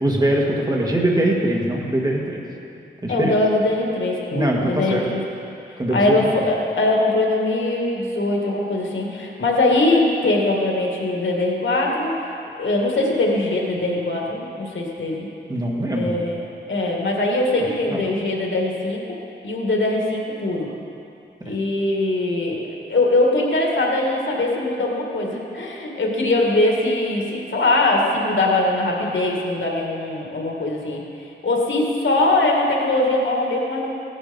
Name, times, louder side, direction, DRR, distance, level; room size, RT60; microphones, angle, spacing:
voice 1, 0.0-2.4 3.0-3.3 4.3-5.0 5.8-6.2 15.5-16.2 21.4-21.5, right 1 dB, 20° right, -2 dB, 1.8 m, -22 dB
voice 2, 3.1-5.2 5.9-12.1 12.6-15.3 15.9-19.0 19.4-20.7 21.4-22.6 22.9-31.0 31.4-33.9, left 2 dB, 80° left, -1 dB, 2.2 m, -21 dB
16.0 x 11.0 x 5.4 m, 2.7 s
wide cardioid pair, 130°, 19 cm